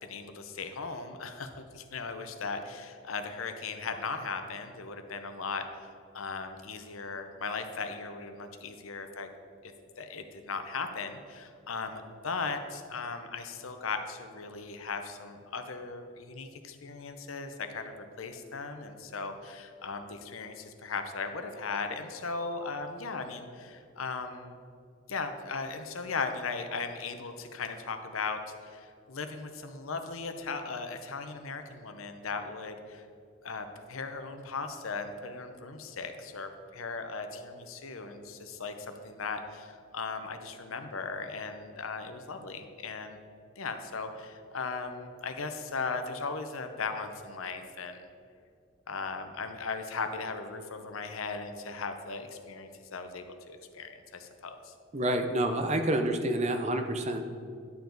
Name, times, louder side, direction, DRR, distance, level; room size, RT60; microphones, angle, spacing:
voice 1, 0.0-9.3 9.6-24.6 25.1-33.0 33.4-43.2 43.6-48.1 48.9-54.7, left 4 dB, 85° left, 7 dB, 0.8 m, -38 dB
voice 2, 54.9-57.3, right 1 dB, 35° right, 6 dB, 0.6 m, -28 dB
11.0 x 7.0 x 3.9 m, 2.4 s
head